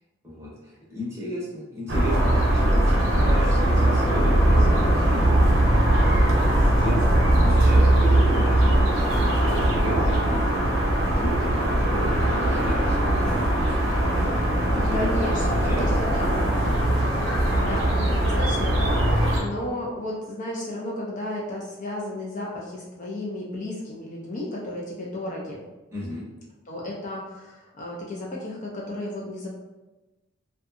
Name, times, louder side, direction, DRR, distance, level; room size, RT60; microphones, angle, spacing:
voice 1, 0.2-5.3 6.5-10.5 10.9-14.0 14.7-15.1 15.5-15.9 25.9-26.3, equal, 15° right, -6 dB, 0.7 m, -34 dB
sound 1, 1.9-19.4, right 1 dB, 75° right, 0.7 m, -20 dB
voice 2, 14.9-16.3 17.6-25.6 26.7-29.5, left 1 dB, 35° left, -3 dB, 0.4 m, -33 dB
2.7 x 2.2 x 2.5 m, 1.1 s
head